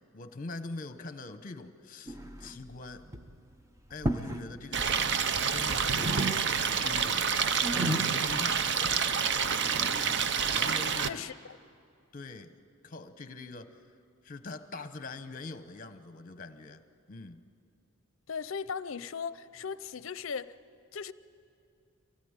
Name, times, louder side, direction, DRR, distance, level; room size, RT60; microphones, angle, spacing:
voice 1, 0.1-3.1 3.9-5.2 5.5-6.4 6.7-7.3 8.0-8.7 10.5-11.3 12.1-12.5 12.8-13.8 14.2-17.4, left 3 dB, 40° left, 0.9 m, -43 dB
sound 1, 2.1-2.8 3.0-3.4 3.9-4.5 4.8-5.6 5.9-6.8 7.2-10.9, right 1 dB, 15° right, 0.7 m, -36 dB
Stream, 4.7-11.1, right 6 dB, 55° right, 0.6 m, -28 dB
voice 2, 11.1-11.6 18.3-20.6 20.9-21.1, left 6 dB, 65° left, 0.6 m, -37 dB
24.0 x 17.5 x 8.9 m
head